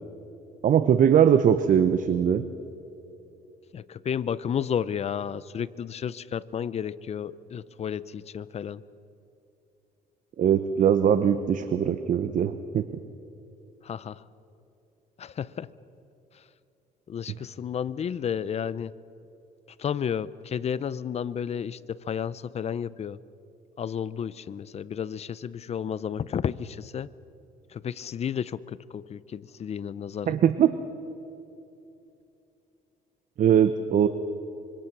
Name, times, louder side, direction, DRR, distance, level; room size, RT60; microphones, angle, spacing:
voice 1, 0.6-2.4 10.4-12.9 30.3-30.7 33.4-34.1, right 9 dB, 50° right, 11 dB, 0.9 m, -21 dB
voice 2, 3.7-8.8 13.8-14.2 15.2-15.7 17.1-18.9 19.8-23.2 23.8-27.1 27.7-30.4, left 8 dB, 40° left, 18 dB, 0.7 m, -32 dB
26.0 x 23.5 x 6.1 m, 2.8 s
cardioid pair, 110°, 17 cm